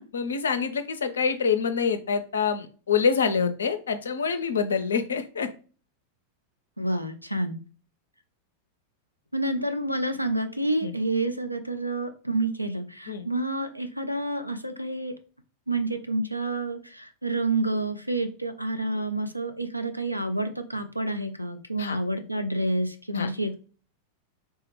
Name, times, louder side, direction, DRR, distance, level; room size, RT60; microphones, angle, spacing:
voice 1, 0.1-5.5 10.8-10.9 13.1-13.3 21.8-22.0 23.1-23.3, left 6 dB, 70° left, 10 dB, 0.4 m, -26 dB
voice 2, 6.8-7.6 9.3-15.1 15.7-23.5, right 2 dB, 90° right, 7 dB, 0.4 m, -29 dB
3.3 x 2.1 x 3.0 m, 0.38 s
figure-of-eight pair, 90°, 0 cm